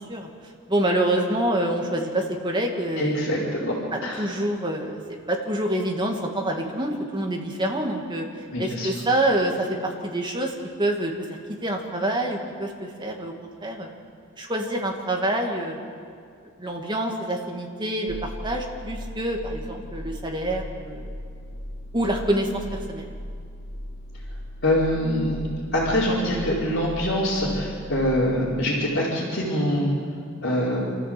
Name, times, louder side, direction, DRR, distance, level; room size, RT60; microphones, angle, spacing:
voice 1, 0.7-3.6 3.9-5.0 5.3-8.2 8.6-11.3 11.6-13.9 14.4-15.8 16.6-18.1 18.4-21.1 21.9-23.1, right 1 dB, 20° right, 1 dB, 2.4 m, -26 dB
voice 2, 3.0-3.7 4.0-4.2 8.5-8.9 24.6-25.3 25.7-29.9 30.4-30.8, left 1 dB, 55° left, -10 dB, 4.8 m, -24 dB
sound 1, 18.1-28.4, equal, 70° left, 4.0 m, -37 dB
27.5 x 14.0 x 7.9 m, 2.2 s
head